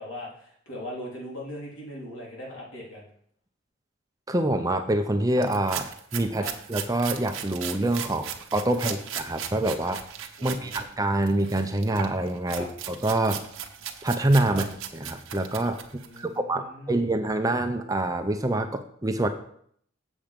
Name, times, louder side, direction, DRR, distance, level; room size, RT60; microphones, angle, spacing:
voice 1, 0.0-3.0 6.4-6.5 8.8-8.9 10.4-10.9 12.5-12.7 14.5-14.6 16.0-17.0, left 1 dB, 70° left, -4 dB, 3.4 m, -39 dB
voice 2, 4.3-10.0 10.4-13.4 14.0-14.7 14.9-15.8 16.2-19.3, right 1 dB, 15° right, 7 dB, 0.5 m, -26 dB
sound 1, 5.4-10.9 11.2-16.2, right 9 dB, 70° right, 0.9 m, -37 dB
7.4 x 7.3 x 5.1 m, 0.64 s
head